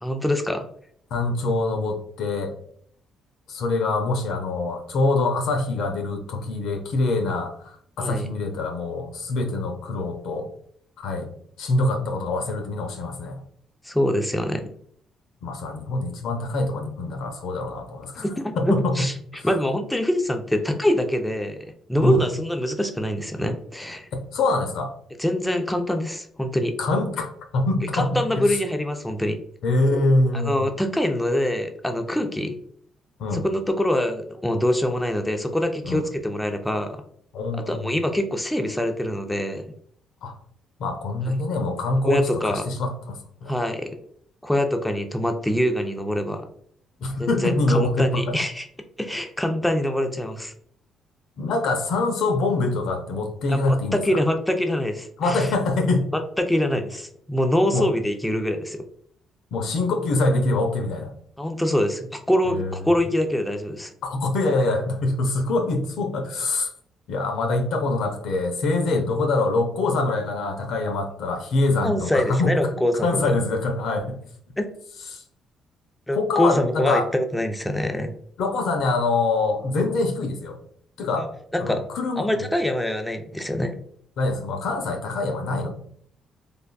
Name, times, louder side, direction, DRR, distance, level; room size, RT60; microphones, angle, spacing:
voice 1, 0.0-0.6 8.0-8.3 13.8-14.7 18.2-19.1 19.4-24.1 25.2-26.7 27.9-29.4 30.3-32.6 33.3-37.0 37.5-39.6 41.2-41.3 42.0-42.6 43.5-43.9 44.4-46.5 47.2-48.7 49.0-50.5 53.5-55.5 56.4-58.8 61.4-63.9 71.8-73.2 74.6-74.7 76.1-78.1 81.2-81.3 81.5-81.8 82.2-83.8, left 1 dB, 5° left, 5 dB, 0.4 m, -24 dB
voice 2, 1.1-2.5 3.5-10.5 11.0-11.3 11.6-13.4 15.4-18.3 18.6-19.1 22.0-22.2 24.1-24.9 26.8-28.6 29.6-30.7 33.2-33.4 35.8-36.1 37.3-38.0 40.2-40.3 40.8-43.6 47.0-48.3 51.4-54.2 55.2-56.1 57.7-57.9 59.5-61.1 62.5-62.9 64.0-66.7 67.1-72.7 73.0-74.1 75.1-75.2 76.1-77.1 78.4-80.6 81.0-81.3 81.6-82.5 84.2-85.7, left 2 dB, 80° left, 5 dB, 0.6 m, -24 dB
3.4 x 2.4 x 2.2 m, 0.63 s
cardioid pair, 90°, 0 cm